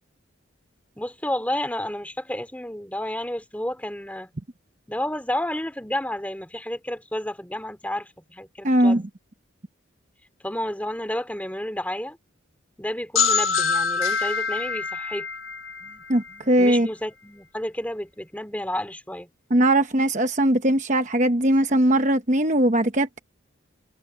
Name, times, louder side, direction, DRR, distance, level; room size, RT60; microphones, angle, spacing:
voice 1, 1.0-4.3 4.9-9.1 10.4-12.2 12.8-15.3 15.8-19.3, left 1 dB, 5° left, 2.5 m, -31 dB
voice 2, 8.6-9.0 16.1-16.9 19.5-23.2, right 1 dB, 35° right, 1.0 m, -20 dB
sound 1, 13.2-16.8, left 5 dB, 85° left, 1.4 m, -25 dB
head